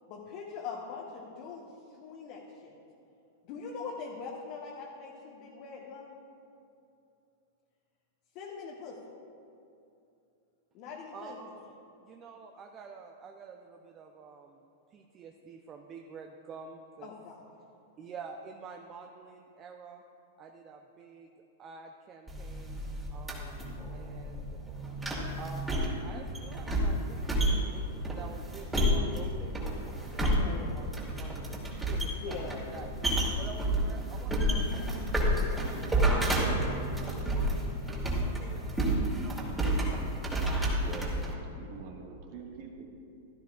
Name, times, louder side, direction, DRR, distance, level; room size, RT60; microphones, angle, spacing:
voice 1, 0.1-1.7 2.0-2.7 3.4-6.2 8.3-9.0 10.7-11.5 17.0-17.6 30.3-30.9 32.2-32.6, left 5 dB, 40° left, -2 dB, 1.3 m, -42 dB
voice 2, 11.1-11.7 12.0-14.6 14.9-17.1 18.0-20.0 20.4-21.3 21.6-22.8 23.1-23.6 23.9-24.6 25.4-32.9 33.4-34.6 35.1-35.5 36.4-39.7, right 5 dB, 30° right, 3 dB, 0.7 m, -48 dB
sound 1, 22.3-41.3, right 1 dB, 10° right, 2.5 m, -30 dB
voice 3, 40.8-42.8, right 5 dB, 45° right, 1 dB, 1.8 m, -45 dB
17.0 x 12.5 x 2.5 m, 2.7 s
figure-of-eight pair, 95°, 0 cm